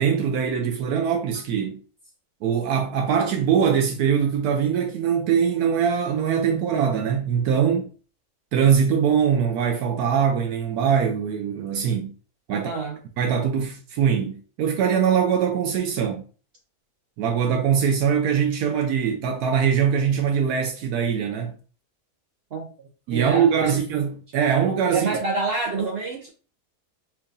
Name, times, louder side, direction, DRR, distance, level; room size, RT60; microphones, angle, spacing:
voice 1, 0.0-1.8 2.4-7.9 8.5-12.1 12.5-12.7 13.2-16.2 17.2-21.5 23.1-25.2, right 7 dB, 80° right, 1.1 m, -22 dB
voice 2, 12.5-13.0 22.5-22.7 23.1-23.8 24.9-26.3, right 4 dB, 55° right, 0.7 m, -27 dB
4.5 x 2.5 x 2.6 m
omnidirectional pair, 1.6 m